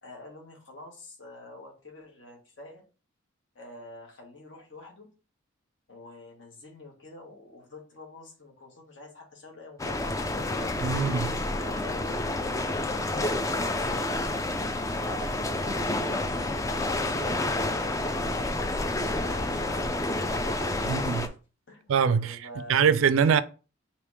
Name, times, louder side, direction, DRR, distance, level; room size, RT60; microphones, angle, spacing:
voice 1, 0.0-2.8 3.5-5.1 5.9-10.7 11.5-14.5 14.8-15.3 15.6-21.3 21.7-22.8, left 2 dB, 60° left, 1.3 m, -47 dB
sound 1, 9.8-21.3, left 2 dB, 15° left, 0.3 m, -29 dB
voice 2, 10.8-11.3 20.9-21.3 21.9-22.4 22.7-23.4, right 6 dB, 80° right, 0.4 m, -23 dB
3.4 x 2.8 x 4.7 m
head